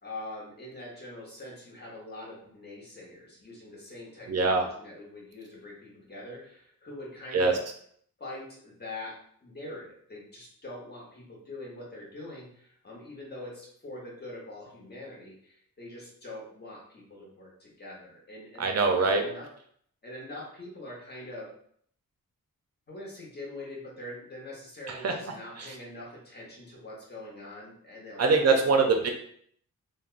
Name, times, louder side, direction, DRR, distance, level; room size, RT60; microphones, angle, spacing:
voice 1, 0.0-7.6 8.2-19.5 20.0-21.5 22.9-28.7, left 1 dB, 30° left, -4 dB, 0.9 m, -43 dB
voice 2, 4.3-4.6 7.3-7.6 18.6-19.3 24.9-25.1 25.6-25.7 28.2-29.1, right 4 dB, 50° right, 3 dB, 0.5 m, -23 dB
3.3 x 2.1 x 2.4 m, 0.63 s
wide cardioid pair, 130°, 35 cm